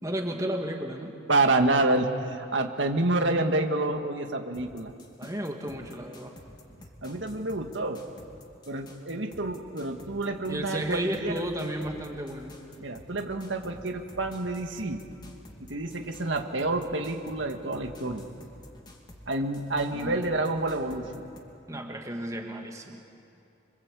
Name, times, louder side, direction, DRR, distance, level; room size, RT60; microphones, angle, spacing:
voice 1, 0.0-1.1 5.2-6.3 10.5-12.6 19.9-20.2 21.7-23.0, right 1 dB, 15° right, 2 dB, 2.3 m, -33 dB
voice 2, 1.3-4.9 5.2-5.3 7.0-8.0 8.7-11.4 12.8-15.0 15.7-18.3 19.3-21.2, right 2 dB, 85° right, 4 dB, 1.9 m, -28 dB
sound 1, 4.5-21.4, left 1 dB, 25° left, 2.7 m, -50 dB
27.0 x 24.5 x 8.5 m, 2.6 s
head